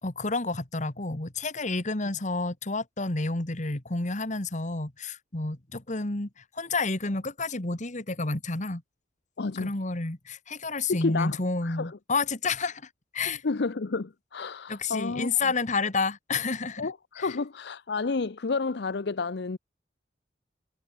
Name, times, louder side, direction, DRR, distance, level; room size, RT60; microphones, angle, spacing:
voice 1, 0.0-8.8 9.6-12.8 13.1-13.4 14.7-16.9 17.2-17.4, left 3 dB, 40° left, 2.0 m, -30 dB
voice 2, 9.4-9.7 10.9-12.0 13.3-15.5 16.8-19.6, left 4 dB, 65° left, 0.7 m, -31 dB
head